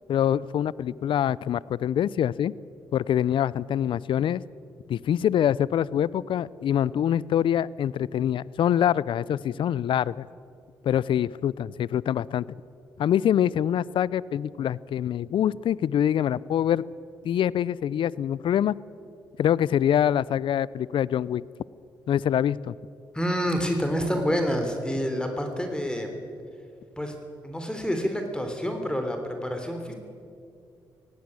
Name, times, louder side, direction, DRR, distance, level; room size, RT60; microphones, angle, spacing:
voice 1, 0.1-2.5 2.9-4.4 4.9-10.3 10.8-12.4 13.0-16.8 17.2-18.8 19.4-21.4 22.1-22.7, left 10 dB, 65° left, 21 dB, 0.5 m, -25 dB
voice 2, 23.1-26.1 27.0-27.2 27.4-29.9, equal, 10° left, 5 dB, 3.5 m, -28 dB
17.5 x 16.5 x 9.7 m, 2.4 s
supercardioid pair, 55°, 9 cm